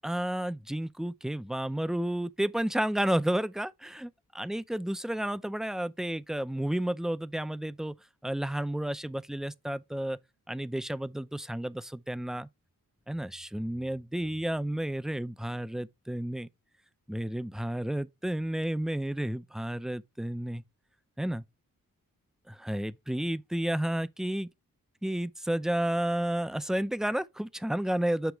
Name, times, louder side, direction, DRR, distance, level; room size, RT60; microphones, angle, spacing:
voice 1, 0.0-7.9 8.2-10.2 10.5-12.5 13.1-16.5 17.1-20.6 21.2-21.4 22.5-24.5 25.0-28.3, right 1 dB, ahead, 0.5 m, -31 dB
8.1 x 3.0 x 4.5 m
cardioid pair, 60°, 35 cm